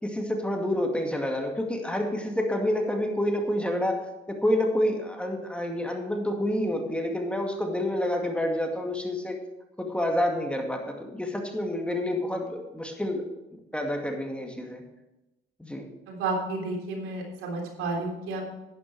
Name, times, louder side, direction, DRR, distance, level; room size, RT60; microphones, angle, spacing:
voice 1, 0.0-4.0 4.3-9.4 9.8-13.3 13.7-14.8 15.6-15.8, left 1 dB, 5° left, 2 dB, 2.1 m, -28 dB
voice 2, 16.1-18.5, right 3 dB, 90° right, 0 dB, 3.5 m, -31 dB
11.5 x 10.0 x 4.7 m, 0.97 s
cardioid pair, 90°, 21 cm